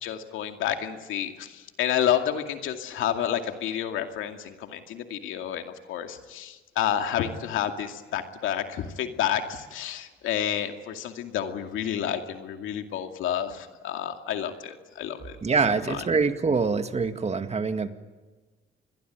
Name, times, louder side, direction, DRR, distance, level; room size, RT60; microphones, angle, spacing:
voice 1, 0.0-15.4 15.9-16.0, left 10 dB, 90° left, 6 dB, 2.4 m, -30 dB
voice 2, 15.4-17.9, right 4 dB, 30° right, 8 dB, 2.0 m, -25 dB
27.5 x 21.5 x 9.3 m, 1.3 s
cardioid pair, 90°, 20 cm